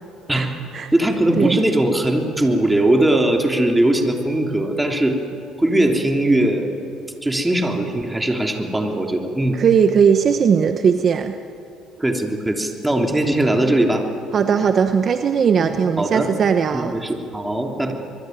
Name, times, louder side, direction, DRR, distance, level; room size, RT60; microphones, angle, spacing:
voice 1, 0.9-5.2 5.6-6.7 7.2-9.6 12.0-14.0 15.6-15.7 16.0-16.3 16.7-17.9, right 1 dB, 10° right, 3 dB, 3.2 m, -20 dB
voice 2, 9.5-11.4 14.3-17.0, right 7 dB, 45° right, 8 dB, 1.0 m, -18 dB
24.0 x 22.5 x 9.5 m, 2.6 s
cardioid pair, 100°, 0 cm